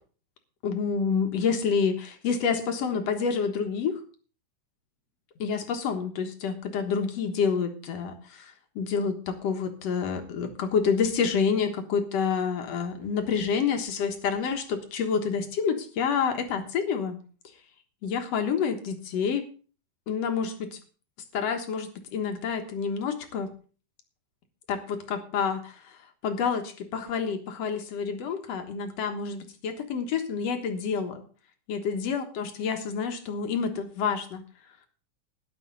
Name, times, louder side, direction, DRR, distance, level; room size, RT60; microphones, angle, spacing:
voice 1, 0.6-3.9 5.4-8.5 8.8-17.2 18.0-19.4 20.1-20.8 21.3-23.5 24.7-25.7 26.2-31.2 31.7-34.4, left 6 dB, 60° left, 6 dB, 2.3 m, -28 dB
14.0 x 10.5 x 4.0 m, 0.38 s
omnidirectional pair, 3.8 m